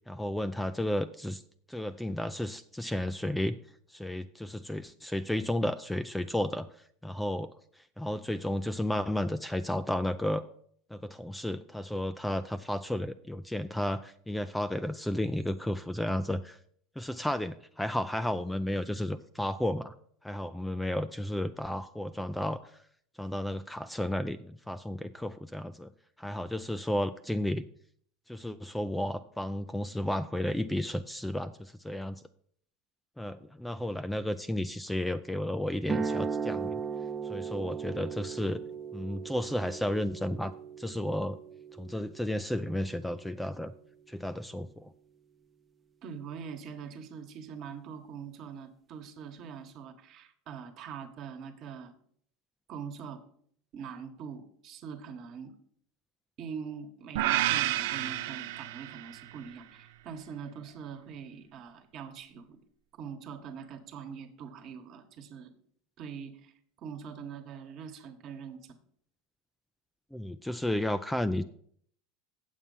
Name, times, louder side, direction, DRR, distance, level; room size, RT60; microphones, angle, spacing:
voice 1, 0.1-1.4 1.7-3.6 3.9-6.7 7.0-7.5 8.0-10.4 10.9-16.6 17.0-19.9 20.2-22.6 23.2-25.9 26.2-27.6 28.3-32.1 33.2-36.8 37.3-38.6 38.9-40.5 40.8-41.4 41.8-43.7 44.1-44.9 70.1-71.4, left 1 dB, 5° left, 11 dB, 0.3 m, -32 dB
sound 1, 35.8-43.9, right 5 dB, 25° right, 0.7 m, -37 dB
voice 2, 46.0-51.9 52.7-53.2 53.7-55.5 56.4-62.6 63.0-65.5 66.0-66.5 66.8-68.8, right 6 dB, 50° right, 7 dB, 1.3 m, -43 dB
sound 2, 57.2-59.4, right 14 dB, 80° right, 0.5 m, -30 dB
8.1 x 7.2 x 5.5 m, 0.62 s
supercardioid pair, 130°, 0 cm